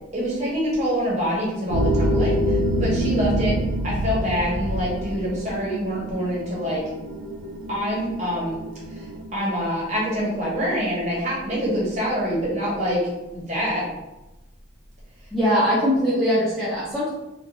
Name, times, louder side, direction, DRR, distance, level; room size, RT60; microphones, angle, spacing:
voice 1, 0.1-3.6 3.8-6.8 7.7-8.6 8.9-13.8, equal, 35° right, -5 dB, 0.8 m, -26 dB
sound 1, 1.7-9.2, equal, 90° right, 0.4 m, -26 dB
voice 2, 15.3-17.1, equal, ahead, -10 dB, 0.5 m, -21 dB
2.4 x 2.2 x 2.8 m, 1.0 s
head